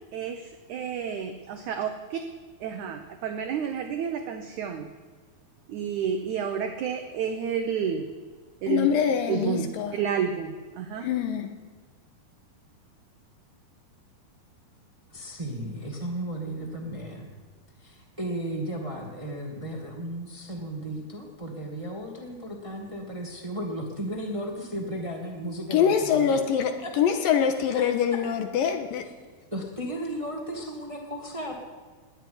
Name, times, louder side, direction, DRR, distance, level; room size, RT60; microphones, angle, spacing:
voice 1, 0.0-2.2 2.6-4.9 5.7-8.1 8.6-8.9 9.3-11.1, right 7 dB, 70° right, 6 dB, 1.9 m, -30 dB
voice 2, 8.7-9.9 11.0-11.5 25.7-29.1, left 8 dB, 70° left, 7 dB, 2.6 m, -24 dB
voice 3, 15.1-17.4 17.8-26.4 26.8-27.0 27.7-27.8 28.1-28.2 29.5-31.6, right 1 dB, 20° right, 0 dB, 0.8 m, -35 dB
19.5 x 7.6 x 9.5 m, 1.5 s
omnidirectional pair, 4.5 m